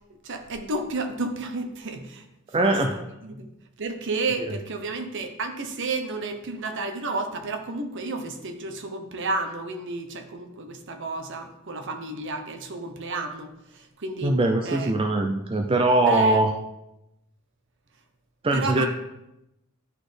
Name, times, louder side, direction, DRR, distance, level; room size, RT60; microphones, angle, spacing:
voice 1, 0.2-2.2 2.6-3.5 3.8-14.3 14.6-14.9 16.1-16.4 18.5-18.9, right 3 dB, 55° right, 6 dB, 0.8 m, -32 dB
voice 2, 2.5-3.0 14.2-16.5 18.4-18.9, right 2 dB, 25° right, 3 dB, 0.4 m, -21 dB
10.5 x 4.1 x 3.3 m, 0.91 s
head